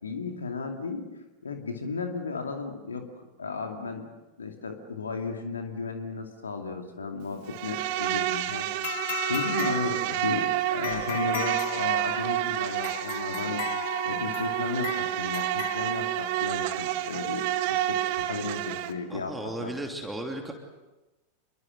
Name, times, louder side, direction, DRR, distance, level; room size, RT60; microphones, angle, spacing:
voice 1, 0.0-1.1 1.4-4.1 4.4-8.7 9.2-19.7, left 4 dB, 70° left, 5 dB, 2.5 m, -34 dB
Insect, 7.5-18.9, right 13 dB, 45° right, 1.8 m, -29 dB
sound 1, 8.8-16.5, left 12 dB, 55° left, 1.2 m, -37 dB
voice 2, 19.1-20.5, right 2 dB, 10° right, 3 dB, 2.9 m, -35 dB
27.5 x 23.5 x 7.9 m, 1.1 s
figure-of-eight pair, 90°, 0 cm